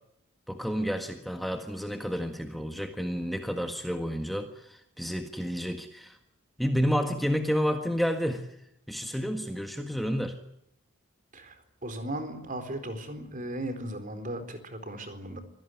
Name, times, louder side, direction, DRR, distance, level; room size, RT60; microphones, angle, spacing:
voice 1, 0.5-6.2 6.6-8.6 8.9-10.4, equal, ahead, 4 dB, 1.6 m, -30 dB
voice 2, 11.3-15.4, right 1 dB, 35° right, 9 dB, 4.1 m, -37 dB
26.0 x 17.5 x 9.3 m, 0.77 s
head